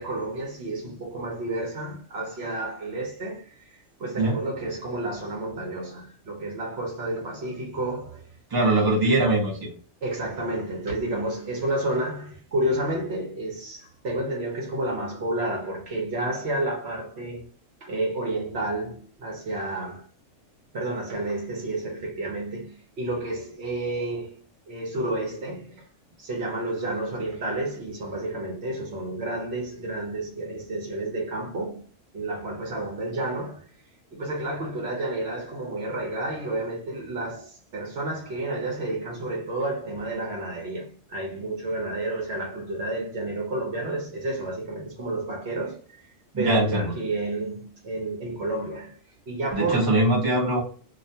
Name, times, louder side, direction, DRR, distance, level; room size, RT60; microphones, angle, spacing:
voice 1, 0.0-8.3 8.6-9.3 10.0-17.4 17.8-20.0 20.7-24.4 24.7-25.8 26.2-31.8 32.1-33.7 34.1-46.0 46.4-48.9 49.3-50.0, right 2 dB, 60° right, 0.9 m, -30 dB
voice 2, 8.5-9.7 46.3-46.9 49.5-50.6, right 2 dB, 20° right, 0.7 m, -22 dB
2.5 x 2.2 x 2.7 m
omnidirectional pair, 1.3 m